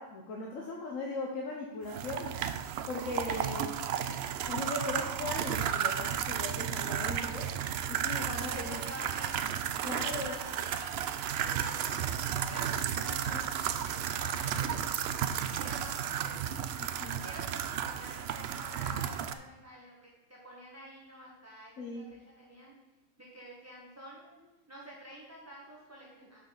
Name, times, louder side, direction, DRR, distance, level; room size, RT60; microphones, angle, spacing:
voice 1, 0.0-2.3 2.9-3.8 4.4-7.5 7.9-8.8 9.8-10.4 13.1-13.5 16.8-17.2 21.8-22.1, left 2 dB, 60° left, -1 dB, 1.3 m, -38 dB
sound 1, 1.9-19.3, right 9 dB, 70° right, 0.6 m, -33 dB
voice 2, 2.0-2.4 3.2-3.8 8.5-15.1 15.5-16.5 17.2-19.9 20.3-22.7 23.2-26.4, right 1 dB, 10° right, -5 dB, 1.2 m, -49 dB
6.0 x 5.8 x 6.8 m, 1.1 s
omnidirectional pair, 1.6 m